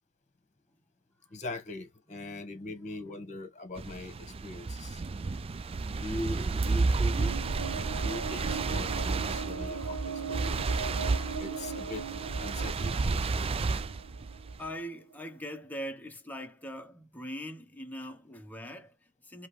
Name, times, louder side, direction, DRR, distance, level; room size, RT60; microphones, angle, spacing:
voice 1, 1.3-5.0 6.0-7.4 8.0-10.6 11.4-12.1 12.4-13.5, left 2 dB, 35° left, 1.3 m, -41 dB
voice 2, 2.1-2.7 3.0-3.3 9.6-9.7 10.0-10.4 14.6-19.5, equal, 10° left, 1.0 m, -42 dB
sound 1, 3.8-14.7, right 3 dB, 25° right, 0.4 m, -32 dB
sound 2, 7.0-15.2, right 5 dB, 75° right, 1.2 m, -39 dB
4.9 x 3.0 x 3.1 m
head